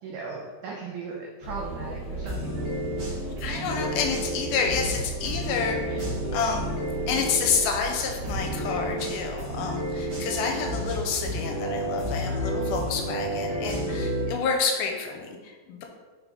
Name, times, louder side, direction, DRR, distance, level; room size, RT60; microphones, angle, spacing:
voice 1, 0.0-2.8, right 4 dB, 85° right, -1 dB, 1.7 m, -37 dB
sound 1, 1.4-13.4, right 1 dB, 55° left, 1.7 m, -37 dB
sound 2, 2.2-7.6 8.2-14.2, equal, 45° right, 2.3 m, -31 dB
voice 2, 3.2-6.7 7.1-15.8, left 5 dB, 80° left, 2 dB, 2.4 m, -29 dB
sound 3, 5.0-14.7, right 2 dB, 60° right, 2.1 m, -47 dB
5.4 x 4.9 x 3.8 m, 1.4 s
omnidirectional pair, 4.4 m